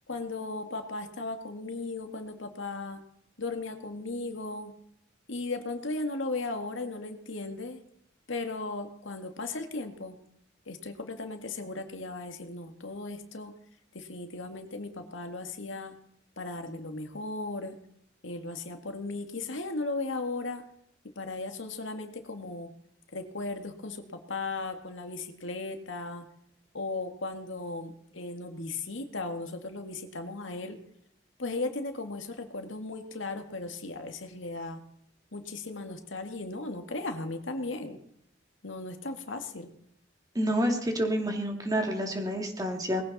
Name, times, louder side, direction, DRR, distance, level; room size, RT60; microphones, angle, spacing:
voice 1, 0.1-3.0 3.4-4.7 5.3-7.8 8.3-10.2 10.7-13.5 13.9-15.9 16.4-17.8 18.2-20.6 21.2-22.7 23.1-24.0 24.3-26.2 26.7-30.8 31.4-34.8 35.3-38.0 38.6-39.7, left 3 dB, 80° left, 6 dB, 2.0 m, -36 dB
voice 2, 40.3-43.0, equal, 20° right, 3 dB, 2.5 m, -28 dB
20.5 x 15.5 x 4.2 m, 0.74 s
head